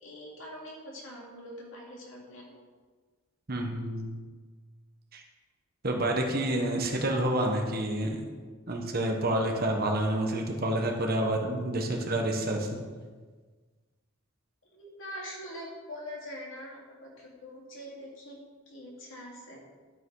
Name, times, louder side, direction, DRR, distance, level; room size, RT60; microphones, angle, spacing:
voice 1, 0.0-2.5 14.7-18.4 18.7-19.6, equal, 70° left, -3 dB, 2.7 m, -43 dB
voice 2, 3.5-4.2 5.1-5.2 5.8-8.2 8.7-12.8, right 1 dB, 45° right, 2 dB, 1.3 m, -28 dB
12.0 x 5.8 x 4.8 m, 1.4 s
head